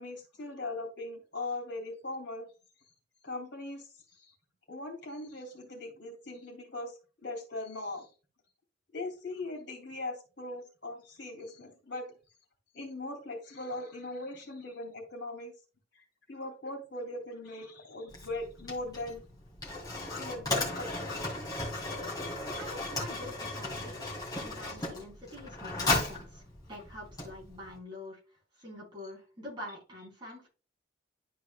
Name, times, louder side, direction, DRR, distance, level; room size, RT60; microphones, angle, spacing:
voice 1, 0.0-2.5 3.2-4.3 4.7-8.1 8.9-12.1 12.7-15.5 15.9-19.2 20.2-21.0 24.6-24.8, left 2 dB, 60° left, 1 dB, 3.0 m, -40 dB
Mechanisms, 18.1-27.8, left 2 dB, 20° left, 2.2 m, -36 dB
voice 2, 22.5-24.1 24.4-28.2 28.6-30.5, left 1 dB, 25° right, -4 dB, 3.7 m, -46 dB
12.0 x 4.7 x 2.4 m, 0.34 s
head